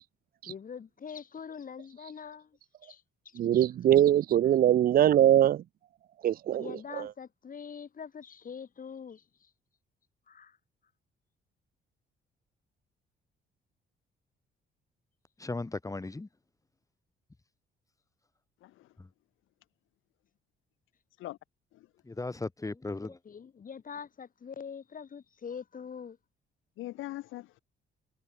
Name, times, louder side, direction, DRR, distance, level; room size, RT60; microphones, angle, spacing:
voice 1, 0.5-3.6 4.4-4.6 6.6-9.5 10.3-10.6 23.2-26.2, left 6 dB, 45° left, 2.4 m, -44 dB
voice 2, 3.4-5.6 6.2-6.6, right 11 dB, 50° right, 0.4 m, -22 dB
voice 3, 15.4-16.3 19.0-19.1 22.1-23.2, left 2 dB, 15° left, 2.2 m, -36 dB
voice 4, 26.8-27.6, left 16 dB, 85° left, 1.1 m, -41 dB
cardioid pair, 90°, 20 cm